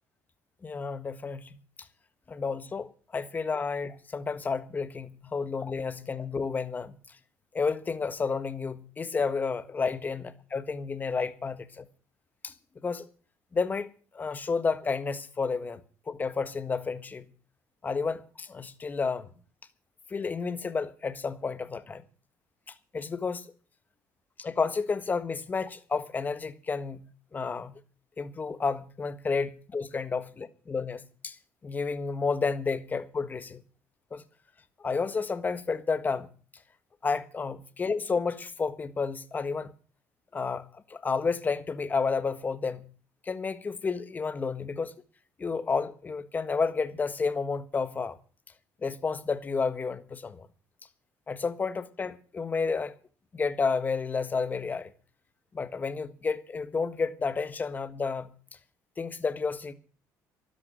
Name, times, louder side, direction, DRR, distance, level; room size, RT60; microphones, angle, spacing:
voice 1, 0.6-1.5 2.3-7.0 7.5-11.8 12.4-12.5 12.8-13.0 13.5-15.8 16.1-17.3 17.8-19.3 20.1-22.0 22.9-23.5 24.4-27.0 27.3-27.7 28.2-31.4 31.6-33.6 34.1-34.2 34.8-36.3 37.0-39.7 40.3-42.9 43.2-44.9 45.4-48.2 48.8-50.5 51.3-53.0 53.3-54.9 55.5-58.3 59.0-59.7, left 4 dB, 25° left, 1.5 m, -31 dB
12.5 x 11.0 x 7.6 m
cardioid pair, 105°, 6 cm